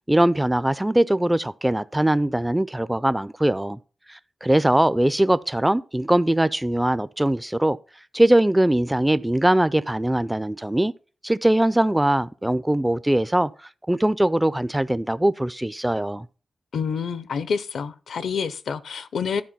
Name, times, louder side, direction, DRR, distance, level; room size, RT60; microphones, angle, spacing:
voice 1, 0.1-3.8 4.1-7.8 8.1-10.9 11.2-13.5 13.9-16.3, right 1 dB, 10° right, 0.4 m, -21 dB
voice 2, 16.7-19.4, left 6 dB, 85° left, 0.6 m, -28 dB
11.5 x 4.5 x 5.6 m
wide cardioid pair, 95°, 0 cm